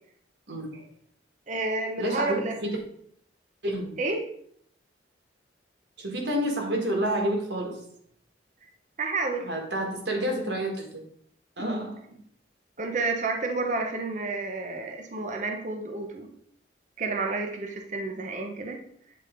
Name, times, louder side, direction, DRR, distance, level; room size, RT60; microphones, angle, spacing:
voice 1, 0.5-0.9 2.0-2.8 3.6-3.9 6.0-7.8 9.4-11.0 11.6-12.0, right 1 dB, 65° right, 2 dB, 1.5 m, -29 dB
voice 2, 1.5-2.5 4.0-4.2 9.0-9.5 11.6-11.9 12.8-16.3 17.0-18.8, right 3 dB, 40° right, 3 dB, 0.7 m, -30 dB
8.5 x 4.0 x 3.7 m, 0.65 s
head